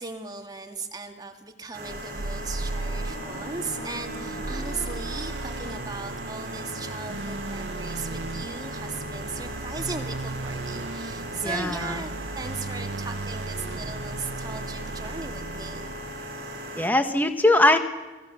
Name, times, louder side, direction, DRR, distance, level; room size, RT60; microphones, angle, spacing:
voice 1, 0.0-15.9, right 4 dB, 20° right, 5 dB, 2.0 m, -37 dB
sound 1, 1.7-16.9, equal, 55° right, 6.3 m, -38 dB
sound 2, 1.9-16.4, right 3 dB, 75° right, 0.7 m, -36 dB
sound 3, 2.4-6.3, equal, 75° left, 4.9 m, -43 dB
voice 2, 11.4-11.8 16.8-17.8, left 1 dB, 10° left, 7 dB, 1.3 m, -20 dB
28.0 x 20.5 x 7.1 m, 1.2 s
head